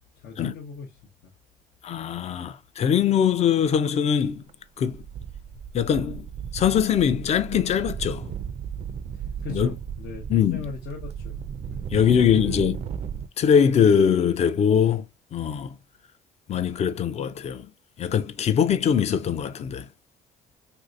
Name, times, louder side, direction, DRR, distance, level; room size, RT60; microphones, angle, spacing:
voice 1, 0.1-0.9 1.2-1.3 9.1-11.4 12.0-12.6, left 5 dB, 75° left, 0.8 m, -37 dB
voice 2, 1.8-4.4 4.8-5.0 5.7-6.3 6.5-8.3 9.5-9.7 10.3-10.6 11.9-12.8 13.4-15.1 15.3-15.8 16.5-17.7 18.0-19.9, left 8 dB, 40° left, 0.4 m, -22 dB
sound 1, 4.3-4.5 4.8-13.3, right 8 dB, 40° right, 0.4 m, -35 dB
3.1 x 2.7 x 2.5 m
cardioid pair, 110°, 17 cm